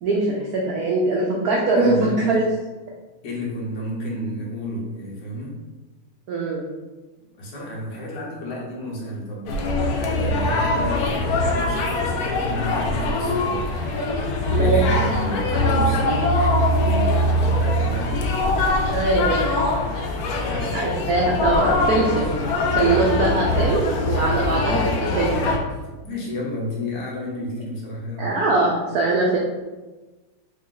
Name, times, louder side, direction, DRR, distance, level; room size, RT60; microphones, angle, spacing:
voice 1, 0.0-2.4 6.3-6.6 14.5-14.8 18.9-19.5 20.7-22.3 22.7-25.5 28.2-29.4, right 2 dB, 90° right, -2 dB, 0.8 m, -22 dB
voice 2, 1.7-2.4 3.2-5.6 7.4-9.6 9.9-16.3 16.7-18.2 19.0-19.1 20.3-20.8 26.0-28.3, left 1 dB, 55° left, -4 dB, 1.6 m, -31 dB
sound 1, 9.5-25.6, left 1 dB, 85° left, 0.8 m, -22 dB
4.1 x 3.2 x 3.8 m, 1.2 s
omnidirectional pair, 2.4 m